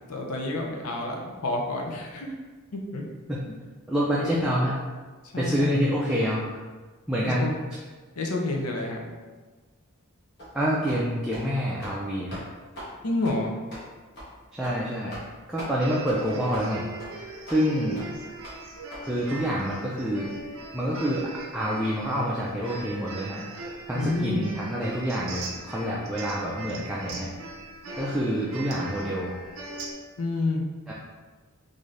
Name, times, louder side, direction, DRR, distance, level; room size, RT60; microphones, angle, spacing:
voice 1, 0.1-2.3 2.7-3.0 4.2-4.4 5.3-5.7 7.2-7.5 8.2-9.1 13.0-13.5 23.9-24.4 30.2-30.6, left 2 dB, 80° left, 1 dB, 0.6 m, -29 dB
voice 2, 3.9-4.7 5.4-6.4 7.1-7.5 10.5-12.4 14.5-15.2 15.5-16.8 17.5-18.0 19.0-20.3 20.7-21.3 21.5-23.4 23.9-27.3 28.0-29.3 30.9-31.0, equal, 5° right, -7 dB, 0.3 m, -27 dB
sound 1, 10.4-10.5 10.9-11.0 11.3-11.5 11.7-12.0 12.3-12.4 12.7-12.9 13.2-13.4 13.7-13.8 14.1-14.3 14.6-14.8 15.1-15.3 15.6-15.7 16.1-16.2 16.5-16.7 17.0-17.1 17.5-17.6 17.9-18.1 18.4-18.6 18.9-19.0 19.3-19.4, equal, 50° left, 1.4 m, -40 dB
sound 2, 15.7-29.9, right 2 dB, 60° right, 0.5 m, -40 dB
3.7 x 2.6 x 3.2 m, 1.4 s
head